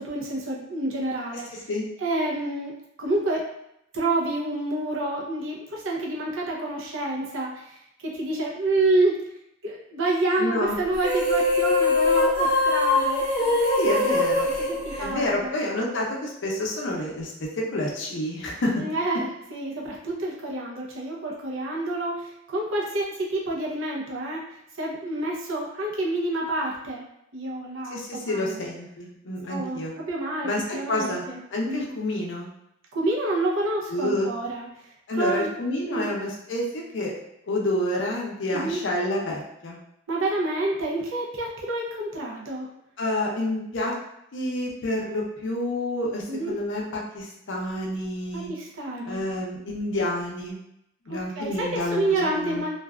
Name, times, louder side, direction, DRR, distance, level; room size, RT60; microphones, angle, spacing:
voice 1, 0.0-1.6 2.0-3.5 3.9-9.4 9.6-13.6 14.6-15.5 18.8-24.4 24.8-27.0 27.3-28.6 29.5-31.9 32.9-34.7 35.2-35.5 35.9-36.2 38.5-38.8 40.1-42.7 46.3-46.5 48.3-49.2 51.1-52.7, right 2 dB, 80° right, -2 dB, 0.6 m, -28 dB
voice 2, 1.5-1.8 10.4-10.8 13.8-14.5 15.0-18.7 27.9-29.9 30.4-30.6 30.9-31.2 31.5-32.5 33.9-34.3 35.1-37.1 37.5-39.8 43.0-43.9 44.3-48.5 49.0-50.6 51.1-52.6, left 1 dB, 65° left, -1 dB, 0.5 m, -28 dB
sound 1, 10.9-15.7, left 2 dB, 10° right, 1.1 m, -22 dB
2.5 x 2.3 x 2.3 m, 0.79 s
head